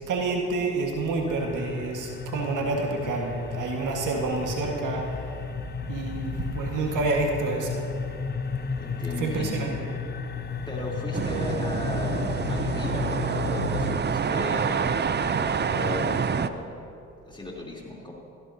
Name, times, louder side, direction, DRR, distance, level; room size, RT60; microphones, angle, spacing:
voice 1, 0.0-5.1 5.9-7.8 9.2-9.7, right 3 dB, 70° right, 0 dB, 1.8 m, -28 dB
sound 1, 1.3-14.0, left 5 dB, 30° left, 0.9 m, -33 dB
voice 2, 8.8-9.7 10.7-16.7 17.3-18.1, left 2 dB, 15° left, -3 dB, 3.6 m, -36 dB
sound 2, 11.1-16.5, right 6 dB, 30° right, 0.6 m, -27 dB
17.0 x 15.0 x 2.9 m, 2.6 s
supercardioid pair, 50°, 33 cm